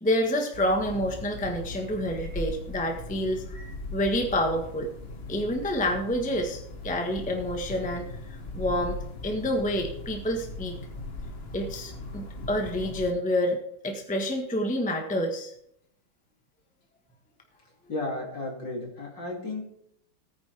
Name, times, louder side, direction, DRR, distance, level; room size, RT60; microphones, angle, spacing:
voice 1, 0.0-4.9 5.3-9.0 9.2-10.7 11.5-15.5, left 1 dB, 5° left, 3 dB, 1.0 m, -28 dB
sound 1, 0.5-13.1, left 2 dB, 35° left, 1.2 m, -39 dB
voice 2, 17.9-19.7, left 2 dB, 60° left, 0 dB, 3.5 m, -34 dB
18.0 x 9.6 x 3.5 m, 0.72 s
omnidirectional pair, 2.3 m